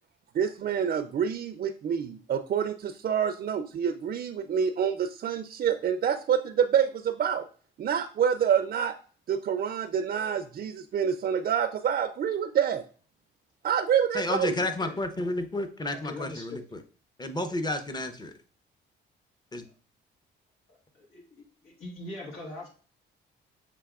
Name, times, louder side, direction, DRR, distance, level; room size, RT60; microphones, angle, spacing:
voice 1, 0.3-7.5 7.8-8.9 9.3-12.8 13.6-14.6, right 8 dB, 50° right, 7 dB, 0.4 m, -27 dB
voice 2, 14.1-16.8 17.2-18.3 19.5-19.6, left 2 dB, 20° left, 7 dB, 0.7 m, -31 dB
voice 3, 15.9-16.6 20.7-22.7, left 1 dB, 85° left, -2 dB, 1.8 m, -42 dB
6.7 x 2.9 x 2.4 m, 0.39 s
cardioid pair, 90°, 20 cm